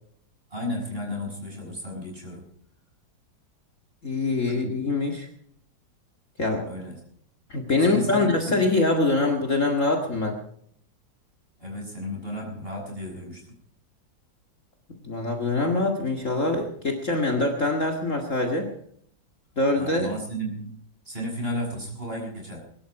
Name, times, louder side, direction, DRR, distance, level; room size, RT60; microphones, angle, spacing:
voice 1, 0.5-2.5 4.5-4.7 6.7-7.0 7.8-8.8 11.6-13.5 19.8-20.8 21.1-22.6, equal, 30° right, 0 dB, 7.4 m, -33 dB
voice 2, 4.0-5.3 6.4-6.7 7.5-10.4 15.0-18.7 19.6-20.1, left 2 dB, 40° left, 2 dB, 2.3 m, -24 dB
22.5 x 12.5 x 4.9 m, 0.65 s
omnidirectional pair, 2.1 m